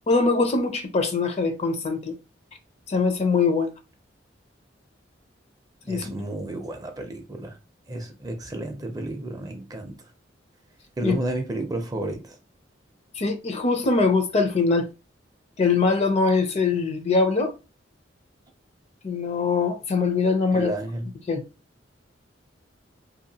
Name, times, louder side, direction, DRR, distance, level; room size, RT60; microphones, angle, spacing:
voice 1, 0.1-2.1 2.9-3.7 5.9-6.1 11.0-11.1 13.2-14.9 15.6-17.5 19.0-20.7 21.3-21.4, left 4 dB, 35° left, 0.5 m, -22 dB
voice 2, 5.8-7.6 7.9-10.0 11.0-12.4 20.5-21.1, right 1 dB, 20° right, 0.5 m, -31 dB
2.7 x 2.4 x 2.7 m
head